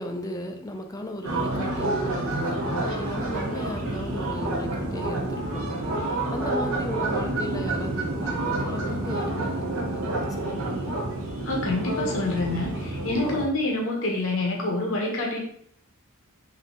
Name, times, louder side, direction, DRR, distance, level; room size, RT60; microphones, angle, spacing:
voice 1, 0.0-5.7 6.0-11.0, equal, 15° left, 5 dB, 0.4 m, -35 dB
sound 1, 1.2-13.5, right 2 dB, 75° right, 0.9 m, -29 dB
voice 2, 11.4-15.4, left 2 dB, 65° left, -1 dB, 0.9 m, -27 dB
3.5 x 2.7 x 3.7 m, 0.67 s
head